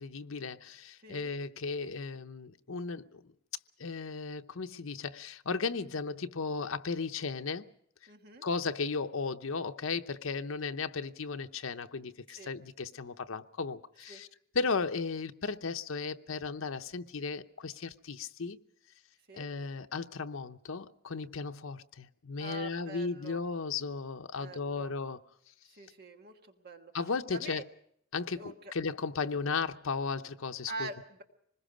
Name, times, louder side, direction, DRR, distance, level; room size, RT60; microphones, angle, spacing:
voice 1, 0.0-3.2 3.8-7.7 8.4-14.3 14.5-18.6 19.3-25.2 26.9-27.6 28.1-30.9, left 4 dB, 80° left, 0.8 m, -35 dB
voice 2, 8.1-8.5 12.3-12.5 14.1-14.2 19.3-19.5 22.4-23.4 24.4-24.9 25.7-26.9 27.3-27.6 28.4-28.7 30.7-31.2, right 3 dB, 50° right, 1.5 m, -44 dB
25.5 x 20.5 x 5.1 m
head